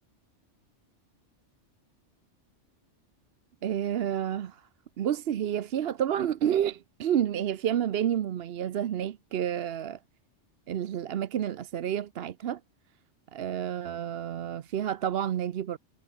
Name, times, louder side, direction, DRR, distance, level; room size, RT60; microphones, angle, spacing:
voice 1, 3.6-4.6 5.0-10.0 10.7-12.6 13.3-15.8, right 10 dB, 60° right, 0.8 m, -29 dB
omnidirectional pair, 1.3 m